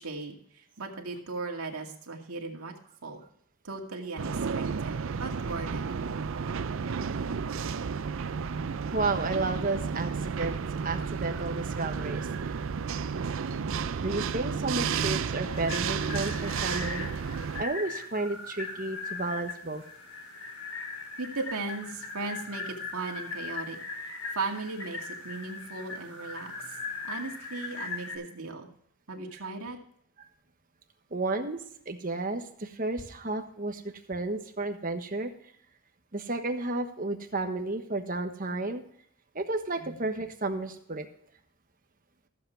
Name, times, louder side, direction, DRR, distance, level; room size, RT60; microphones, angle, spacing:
voice 1, 0.0-2.7 3.0-3.2 3.6-5.8 21.2-23.8 24.3-26.5 27.0-28.7 29.1-29.8 39.8-39.9, right 3 dB, 80° right, 1 dB, 2.2 m, -37 dB
sound 1, 4.2-17.6, right 6 dB, 65° right, 0.5 m, -32 dB
voice 2, 8.9-10.6 10.8-12.5 14.0-19.8 30.2-30.3 31.1-31.6 31.8-35.3 36.1-38.8 39.3-41.1, right 2 dB, 40° right, 5 dB, 1.2 m, -32 dB
sound 2, 15.5-28.2, left 4 dB, 75° left, 3.7 m, -39 dB
14.5 x 7.8 x 4.6 m, 0.67 s
head